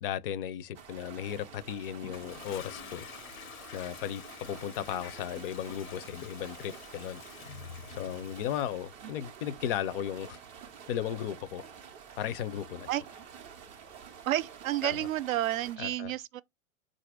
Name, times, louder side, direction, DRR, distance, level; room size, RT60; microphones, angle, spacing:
voice 1, 0.0-3.1 3.7-7.2 7.9-10.4 10.9-11.7 12.2-12.9 14.8-15.0 15.8-16.1, left 10 dB, 45° left, 0.5 m, -35 dB
sound 1, 0.7-15.8, right 7 dB, 15° right, 0.3 m, -49 dB
Toilet flush, 2.0-8.8, left 7 dB, 85° left, 1.0 m, -48 dB
voice 2, 14.3-16.4, right 13 dB, 80° right, 0.5 m, -30 dB
4.0 x 2.6 x 4.8 m
hypercardioid pair, 120°, 41 cm